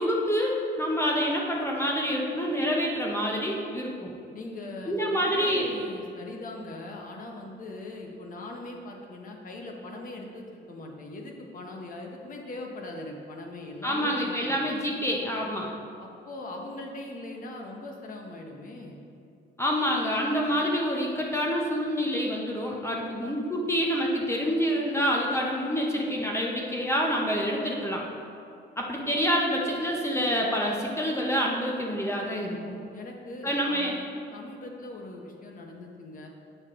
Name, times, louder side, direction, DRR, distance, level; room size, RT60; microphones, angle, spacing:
voice 1, 0.0-4.1 4.9-5.7 13.8-15.7 19.6-28.0 28.8-32.8 33.4-33.9, equal, 15° left, -1 dB, 0.8 m, -27 dB
voice 2, 4.3-14.6 16.0-19.0 32.9-34.0 34.3-36.3, left 2 dB, 45° left, 1 dB, 1.1 m, -40 dB
9.0 x 6.3 x 3.7 m, 2.5 s
cardioid pair, 140°, 20 cm